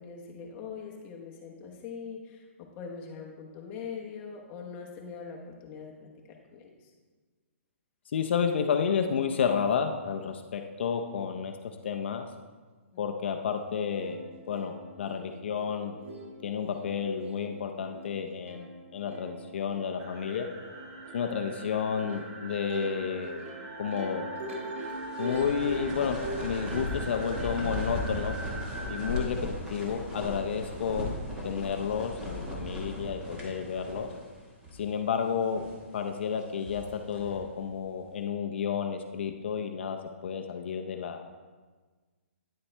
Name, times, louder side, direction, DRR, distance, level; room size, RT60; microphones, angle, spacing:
voice 1, 0.0-6.9 12.9-13.0, left 6 dB, 20° left, 0 dB, 1.0 m, -42 dB
voice 2, 8.1-12.3 13.0-14.2 14.5-15.9 16.4-20.5 21.1-23.4 23.8-24.3 25.2-28.4 28.9-31.1 31.4-34.1 34.7-35.6 35.9-41.2, left 7 dB, 55° left, 4 dB, 0.6 m, -31 dB
Plucked string instrument, 13.6-13.7 14.0-27.5, right 1 dB, 70° right, 1.5 m, -42 dB
sound 1, 20.0-29.2, right 2 dB, 25° right, 0.9 m, -43 dB
sound 2, 24.8-34.4 34.6-34.7 35.3-35.8 36.4-37.5, left 1 dB, 10° right, 1.3 m, -37 dB
9.7 x 7.1 x 3.3 m, 1.4 s
hypercardioid pair, 165°, 7 cm